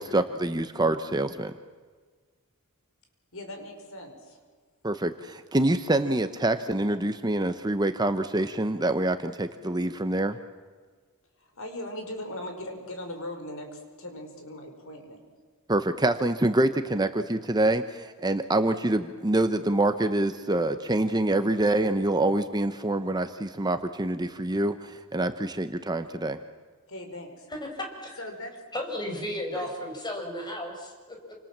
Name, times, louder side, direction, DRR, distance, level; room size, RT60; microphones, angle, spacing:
voice 1, 0.0-1.5 4.8-10.4 15.7-26.4, right 2 dB, 20° right, 9 dB, 0.9 m, -26 dB
voice 2, 3.3-4.4 11.4-15.2 26.9-27.5 28.2-28.5 29.5-29.7, left 1 dB, 65° left, 5 dB, 5.3 m, -39 dB
voice 3, 27.5-28.2 28.7-31.3, left 1 dB, 20° left, 2 dB, 5.8 m, -34 dB
28.5 x 26.5 x 7.5 m, 1.5 s
head